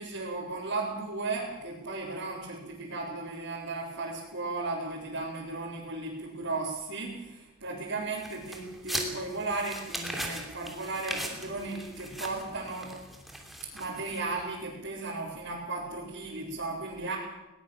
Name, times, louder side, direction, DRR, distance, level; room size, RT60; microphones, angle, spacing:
voice 1, 0.0-13.0 13.7-17.2, right 3 dB, 60° right, -7 dB, 5.0 m, -35 dB
sound 1, 8.2-14.4, right 1 dB, ahead, 3.1 m, -39 dB
20.5 x 19.5 x 7.5 m, 1.0 s
head